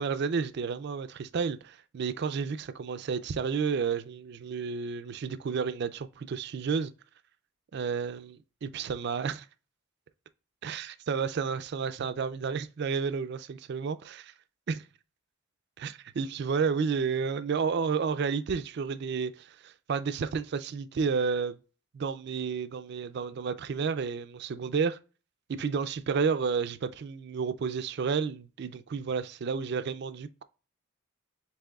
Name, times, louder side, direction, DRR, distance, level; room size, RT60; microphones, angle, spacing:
voice 1, 0.0-6.9 7.7-9.5 10.6-14.0 14.7-14.8 15.8-21.6 21.9-25.0 25.5-30.4, right 5 dB, 55° right, 0.4 m, -31 dB
7.6 x 3.0 x 2.3 m
head